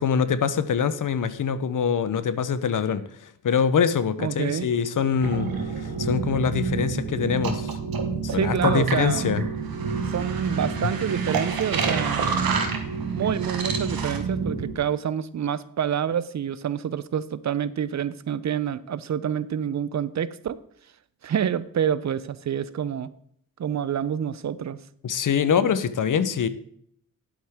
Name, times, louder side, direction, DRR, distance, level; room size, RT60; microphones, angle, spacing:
voice 1, 0.0-7.8 8.2-9.4 25.0-26.5, left 7 dB, 65° left, 14 dB, 0.7 m, -24 dB
voice 2, 4.2-4.7 8.3-9.3 10.1-12.6 13.1-20.6 21.2-23.1 23.6-24.8, right 8 dB, 55° right, 16 dB, 0.5 m, -27 dB
sound 1, 5.2-14.7, right 5 dB, 90° right, 1.3 m, -28 dB
10.5 x 8.0 x 3.5 m, 0.67 s
wide cardioid pair, 90°, 35 cm